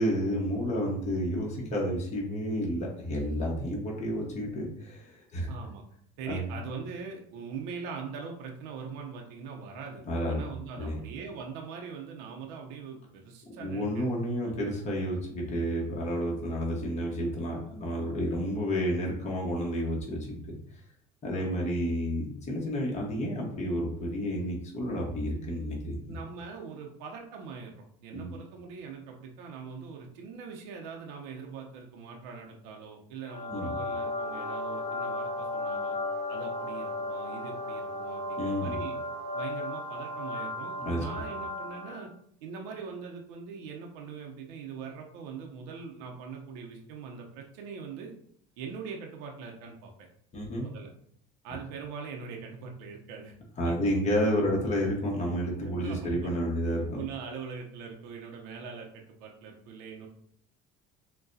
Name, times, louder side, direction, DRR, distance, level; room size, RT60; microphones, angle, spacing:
voice 1, 0.0-5.5 6.3-6.4 10.1-10.4 10.8-11.0 13.6-20.6 21.2-26.2 28.1-28.3 33.5-33.7 38.4-38.8 40.8-41.0 50.3-50.7 53.6-57.0, equal, 35° left, -2 dB, 1.2 m, -30 dB
voice 2, 5.5-5.8 6.2-10.0 10.3-14.1 14.4-14.5 21.3-21.6 26.1-36.0 36.3-39.0 39.3-42.1 42.4-48.1 48.6-49.9 50.6-50.9 51.4-53.3 53.6-54.1 55.6-56.3 56.9-60.1, right 5 dB, 85° right, 1 dB, 0.7 m, -42 dB
sound 1, 33.2-42.1, left 1 dB, 50° left, 1.7 m, -35 dB
6.1 x 2.3 x 2.7 m, 0.66 s
supercardioid pair, 105°, 21 cm